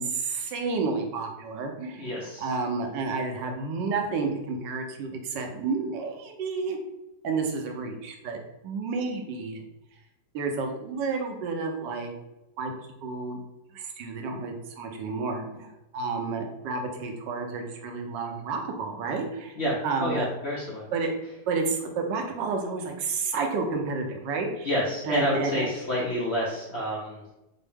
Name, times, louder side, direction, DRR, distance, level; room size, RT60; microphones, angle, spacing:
voice 1, 0.0-6.8 7.2-9.6 10.3-12.1 12.6-12.7 13.0-13.4 13.7-19.6 19.8-20.3 20.9-21.1 21.5-24.8 25.0-25.7, right 4 dB, 80° right, 2 dB, 1.3 m, -30 dB
voice 2, 2.0-2.5 19.6-19.7 20.0-20.8 24.6-27.2, equal, 60° left, -5 dB, 0.7 m, -28 dB
4.5 x 2.0 x 3.4 m, 0.94 s
omnidirectional pair, 1.9 m